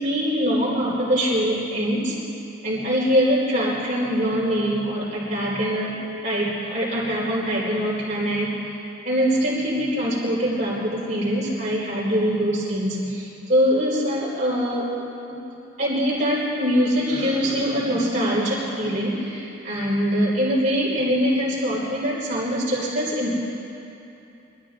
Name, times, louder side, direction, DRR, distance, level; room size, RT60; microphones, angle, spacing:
voice 1, 0.0-2.1 2.6-8.6 9.0-14.9 15.8-23.4, equal, 35° right, -7 dB, 4.6 m, -23 dB
25.0 x 13.0 x 3.8 m, 2.9 s
head